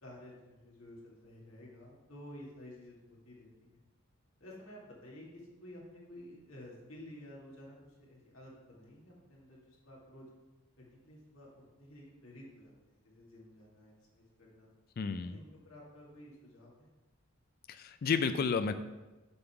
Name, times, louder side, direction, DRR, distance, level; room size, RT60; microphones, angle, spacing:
voice 1, 0.0-3.8 4.4-10.3 10.8-14.7 15.2-16.9, left 1 dB, 70° left, -4 dB, 2.2 m, -52 dB
voice 2, 15.0-15.4 17.7-18.7, left 5 dB, 45° left, 10 dB, 0.3 m, -31 dB
7.8 x 3.8 x 5.8 m, 1.1 s
head